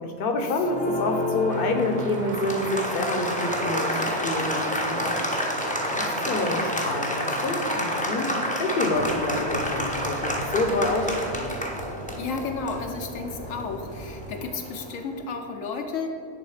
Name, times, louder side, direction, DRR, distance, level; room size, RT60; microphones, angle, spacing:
voice 1, 0.0-5.2 5.9-11.6, left 2 dB, 50° left, 5 dB, 0.9 m, -28 dB
Applause, 0.6-15.0, equal, 10° left, 0.6 m, -29 dB
sound 1, 1.5-11.3, right 5 dB, 90° right, 0.4 m, -39 dB
sound 2, 8.9-14.3, right 2 dB, 35° right, 0.7 m, -41 dB
voice 2, 12.2-16.1, left 4 dB, 80° left, 4 dB, 1.0 m, -32 dB
10.0 x 3.7 x 4.9 m, 2.5 s
omnidirectional pair, 1.4 m